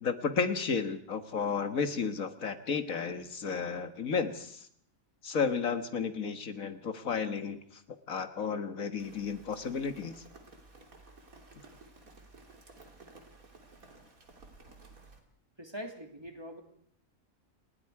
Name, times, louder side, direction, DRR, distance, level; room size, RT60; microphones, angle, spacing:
voice 1, 0.0-4.7 5.2-7.8 8.1-10.2, left 5 dB, 75° left, 9 dB, 2.0 m, -33 dB
Rain, 9.0-15.2, right 3 dB, 85° right, 3.6 m, -55 dB
voice 2, 15.6-16.6, equal, 20° right, 4 dB, 2.9 m, -43 dB
29.0 x 20.0 x 4.8 m, 0.63 s
omnidirectional pair, 1.4 m